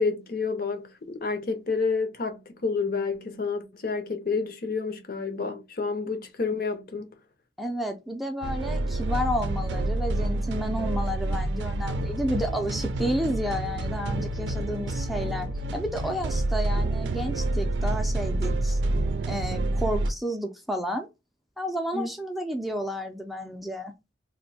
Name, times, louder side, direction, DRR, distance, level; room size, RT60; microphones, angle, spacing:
voice 1, 0.0-7.1 21.9-22.1, left 4 dB, 55° left, 0.6 m, -29 dB
voice 2, 7.6-18.8 19.3-21.1 21.6-23.9, equal, ahead, 0.4 m, -31 dB
sound 1, 8.4-20.1, right 2 dB, 80° right, 0.4 m, -28 dB
2.6 x 2.1 x 4.0 m
head